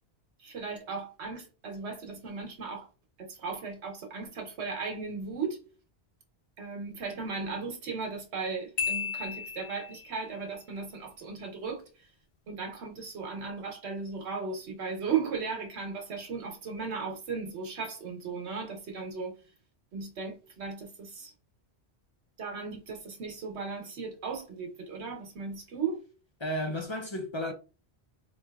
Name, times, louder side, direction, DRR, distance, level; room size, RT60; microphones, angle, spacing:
voice 1, 0.4-2.9 3.2-5.6 6.6-11.9 12.5-19.4 19.9-21.3 22.4-26.0, right 5 dB, 85° right, 1.2 m, -36 dB
Marimba xylophone, 8.8-10.2, left 7 dB, 75° left, 1.0 m, -34 dB
voice 2, 26.4-27.5, equal, 40° left, 0.4 m, -33 dB
3.9 x 3.0 x 2.3 m
omnidirectional pair, 1.1 m